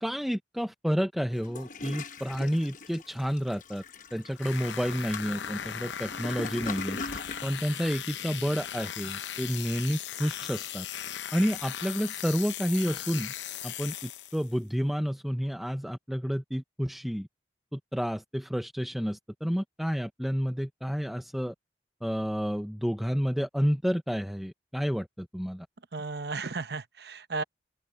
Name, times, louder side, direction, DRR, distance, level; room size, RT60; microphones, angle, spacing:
voice 1, 0.0-3.8 4.1-7.0 7.4-10.9 11.3-13.3 13.6-17.3 17.7-21.5 22.0-25.7, equal, ahead, 0.7 m, -30 dB
Toilet flush, 1.3-7.5, left 3 dB, 45° left, 1.1 m, -41 dB
sound 1, 4.4-14.5, left 9 dB, 85° left, 0.8 m, -38 dB
voice 2, 25.9-27.4, right 4 dB, 60° right, 0.9 m, -34 dB
open air
head